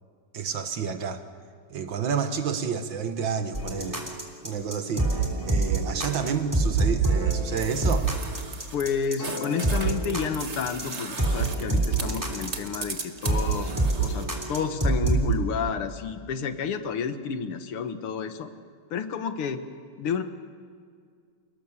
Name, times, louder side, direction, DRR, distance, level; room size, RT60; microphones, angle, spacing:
voice 1, 0.3-1.2 1.7-4.0 4.4-8.1, right 6 dB, 60° right, 8 dB, 1.9 m, -30 dB
sound 1, 3.5-15.3, right 3 dB, 10° right, 2.8 m, -26 dB
sound 2, 7.6-14.3, right 4 dB, 35° right, 1.6 m, -38 dB
voice 2, 8.7-13.7 14.0-18.5 18.9-19.6 20.0-20.2, left 6 dB, 80° left, 9 dB, 2.2 m, -30 dB
28.5 x 19.0 x 7.3 m, 2.1 s
omnidirectional pair, 2.4 m